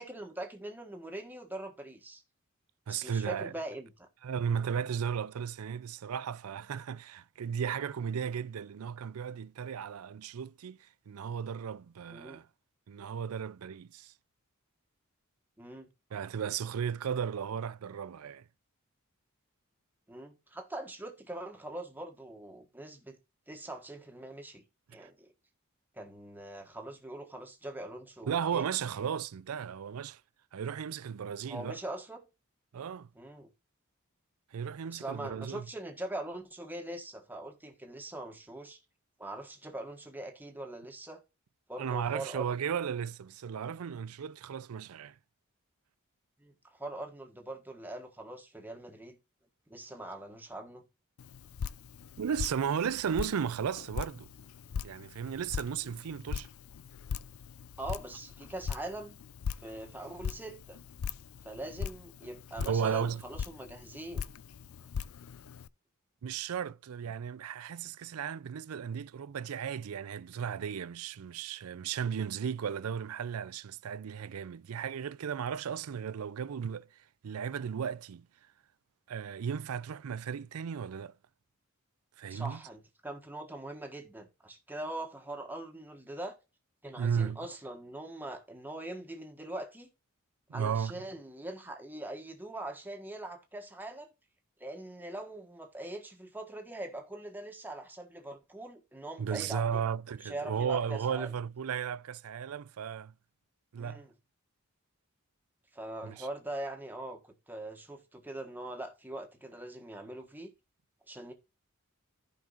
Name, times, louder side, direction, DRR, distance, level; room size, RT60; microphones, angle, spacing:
voice 1, 0.0-2.2 2.9-4.1 12.1-12.4 15.6-15.9 20.1-23.2 23.5-24.6 24.9-25.3 25.9-28.6 31.5-32.2 33.1-33.5 34.9-38.8 39.2-41.2 41.7-42.5 46.4-49.2 49.7-50.9 57.8-59.2 59.6-60.8 61.4-64.3 82.3-86.3 86.8-89.9 90.5-94.1 94.6-99.8 100.2-101.3 103.8-104.1 105.7-107.2 107.5-110.5 111.1-111.3, right 1 dB, 10° right, 1.4 m, -42 dB
voice 2, 2.9-3.5 4.2-12.5 12.9-14.1 16.1-18.4 25.0-25.1 28.2-30.2 30.5-31.8 32.7-33.1 34.5-35.7 41.8-45.1 52.2-54.3 54.8-56.5 62.6-63.2 66.2-76.9 77.2-78.3 79.1-81.2 82.2-82.6 87.0-87.4 90.5-90.9 99.2-103.1 103.7-104.0 106.0-106.3, right 7 dB, 90° right, 0.4 m, -35 dB
Drip, 51.2-65.7, left 6 dB, 75° left, 0.4 m, -41 dB
14.5 x 5.3 x 2.5 m
head